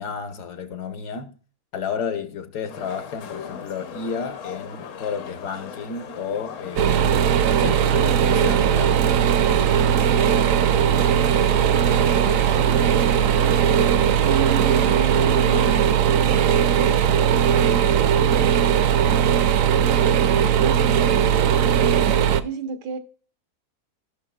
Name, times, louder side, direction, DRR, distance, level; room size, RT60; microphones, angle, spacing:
voice 1, 0.0-1.4 1.7-7.3 7.6-9.0, left 6 dB, 75° left, 1.6 m, -32 dB
sound 1, 2.7-15.9, left 7 dB, 60° left, 1.0 m, -38 dB
sound 2, 6.8-22.4, right 8 dB, 65° right, 0.9 m, -18 dB
voice 2, 11.5-12.2 14.2-15.9 20.6-20.8 22.4-23.0, right 6 dB, 90° right, 1.6 m, -33 dB
16.0 x 6.0 x 2.3 m
omnidirectional pair, 1.7 m